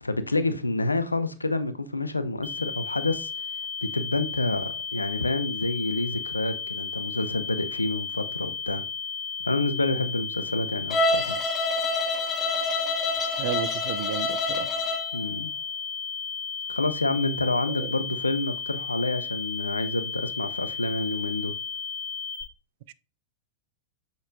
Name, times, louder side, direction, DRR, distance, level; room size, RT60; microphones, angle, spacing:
voice 1, 0.0-8.8 9.4-11.3 15.1-15.5 16.7-21.5, left 2 dB, 85° left, 0.6 m, -28 dB
sound 1, 2.4-22.4, left 6 dB, 5° right, 2.0 m, -34 dB
Bowed string instrument, 10.9-15.1, left 2 dB, 25° left, 1.1 m, -27 dB
voice 2, 13.4-14.7 17.8-17.9 22.9-23.0, right 11 dB, 55° right, 0.4 m, -33 dB
7.0 x 6.3 x 2.2 m
figure-of-eight pair, 95°, 0 cm